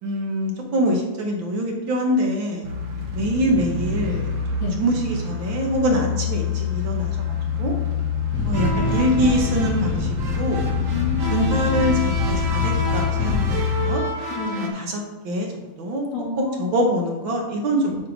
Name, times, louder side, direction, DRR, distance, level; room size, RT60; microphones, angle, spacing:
voice 1, 0.0-2.7 3.1-4.3 4.6-7.2 7.6-7.8 8.5-10.7 11.3-14.0 14.8-16.1 16.6-18.0, equal, 65° right, 1 dB, 1.9 m, -24 dB
sound 1, 2.6-14.0, left 7 dB, 80° right, 1.9 m, -26 dB
sound 2, 8.3-13.6, equal, 10° left, 0.6 m, -28 dB
sound 3, 8.5-14.7, right 2 dB, 45° right, 1.2 m, -30 dB
voice 2, 10.9-11.5 14.3-14.8 16.1-16.8 17.9-18.0, left 5 dB, 70° left, 0 dB, 2.1 m, -29 dB
8.0 x 3.5 x 6.1 m, 1.2 s
omnidirectional pair, 2.4 m